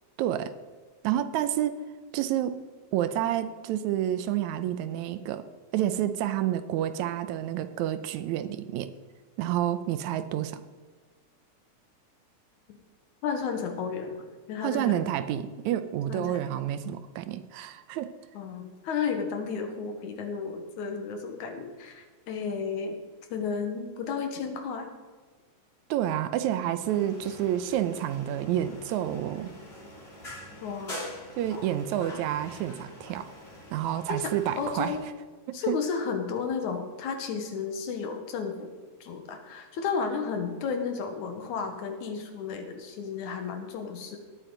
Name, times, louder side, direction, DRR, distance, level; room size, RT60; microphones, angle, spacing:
voice 1, 0.2-0.5 1.0-1.8 2.1-2.6 2.9-5.5 5.7-8.9 9.4-10.6 14.6-18.1 25.9-29.5 31.4-33.3 33.7-35.0 35.5-35.8, right 11 dB, 85° right, 12 dB, 2.0 m, -29 dB
voice 2, 13.2-15.0 16.1-16.5 18.3-23.0 23.3-24.9 30.6-31.0 34.1-35.0 35.5-38.7 39.0-44.2, left 5 dB, 90° left, 5 dB, 2.8 m, -33 dB
sound 1, 26.8-35.1, left 1 dB, 20° left, 2.9 m, -44 dB
18.5 x 8.9 x 3.9 m, 1.4 s
omnidirectional pair, 3.3 m